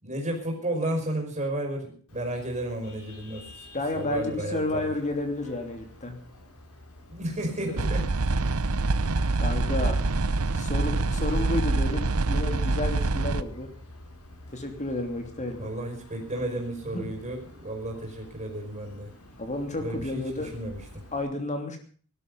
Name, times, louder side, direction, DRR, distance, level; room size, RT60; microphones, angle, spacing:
voice 1, 0.0-3.7 3.9-4.9 7.1-8.1 10.9-11.0 15.6-19.1 19.8-21.0, right 1 dB, 30° right, 1 dB, 5.1 m, -33 dB
Vehicle horn car horn honking, 2.1-21.2, left 1 dB, 85° left, 6.1 m, -49 dB
voice 2, 3.7-6.2 7.7-7.8 9.4-10.0 10.5-13.7 14.5-15.7 16.8-17.0 19.4-20.5 21.1-21.8, left 2 dB, 35° left, 5 dB, 3.0 m, -31 dB
sound 1, 7.8-13.4, right 3 dB, 70° right, 0.9 m, -25 dB
19.0 x 12.5 x 5.4 m, 0.44 s
head